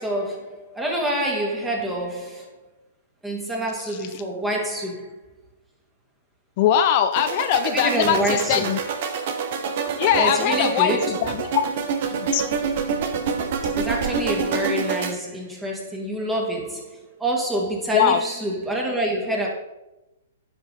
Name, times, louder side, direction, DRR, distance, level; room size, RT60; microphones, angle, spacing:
voice 1, 0.0-2.5 3.2-5.2 7.6-8.8 10.1-11.2 13.7-19.5, right 1 dB, 10° right, -1 dB, 2.2 m, -26 dB
voice 2, 6.6-8.8 10.0-11.6 12.1-12.4 17.9-18.2, left 9 dB, 45° left, 10 dB, 0.4 m, -21 dB
sound 1, 7.1-15.1, right 5 dB, 55° right, 1.1 m, -27 dB
10.0 x 6.0 x 4.1 m, 0.97 s
hypercardioid pair, 130°, 0 cm